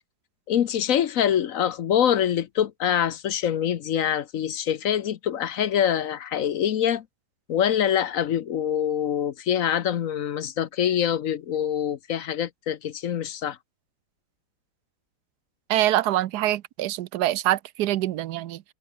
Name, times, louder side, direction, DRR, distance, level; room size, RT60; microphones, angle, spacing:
voice 1, 0.5-7.0 7.5-13.6, left 9 dB, 60° left, 1.1 m, -25 dB
voice 2, 15.7-18.6, right 14 dB, 85° right, 1.2 m, -24 dB
omnidirectional pair, 1.7 m